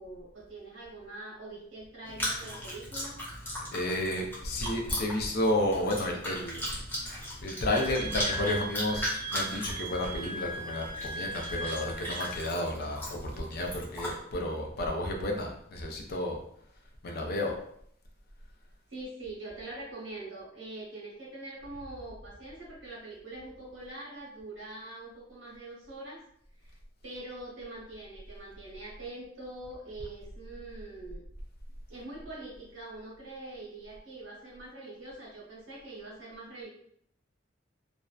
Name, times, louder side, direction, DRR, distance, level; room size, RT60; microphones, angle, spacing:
voice 1, 0.0-3.2 17.1-17.3 18.9-26.2 26.6-26.8 27.0-31.2 31.9-36.7, right 2 dB, 85° right, -4 dB, 1.0 m, -44 dB
Chewing mastication, 2.0-14.1, equal, 10° left, 0.6 m, -38 dB
voice 2, 3.7-6.7 7.0-16.4 17.0-17.6, left 1 dB, 55° left, 1 dB, 0.5 m, -32 dB
Wind instrument woodwind instrument, 7.7-12.4, right 1 dB, 25° right, 0.4 m, -39 dB
2.5 x 2.1 x 2.3 m, 0.68 s
head